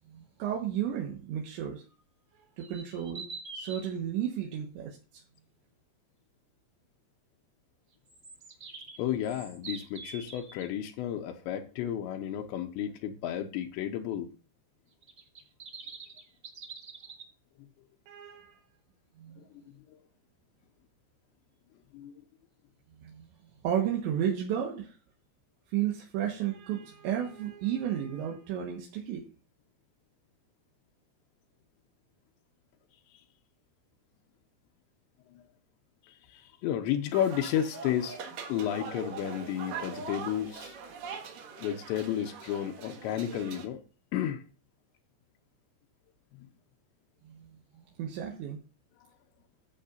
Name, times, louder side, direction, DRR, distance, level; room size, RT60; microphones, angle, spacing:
voice 1, 0.1-1.8 2.6-3.3 3.5-5.2 18.1-18.6 19.2-19.4 23.0-23.3 23.6-24.9 25.7-29.2 47.3-47.5 48.0-48.6, right 10 dB, 80° right, 3.7 m, -33 dB
sound 1, 2.6-3.9 8.1-10.7 15.0-17.2, right 4 dB, 40° right, 1.2 m, -45 dB
voice 2, 9.0-14.3 19.9-20.0 21.9-22.1 36.1-38.2 38.5-40.8 41.6-43.8 44.1-44.4, left 10 dB, 85° left, 3.0 m, -32 dB
sound 2, 37.1-43.7, right 6 dB, 60° right, 2.8 m, -42 dB
14.0 x 7.5 x 2.6 m
omnidirectional pair, 5.1 m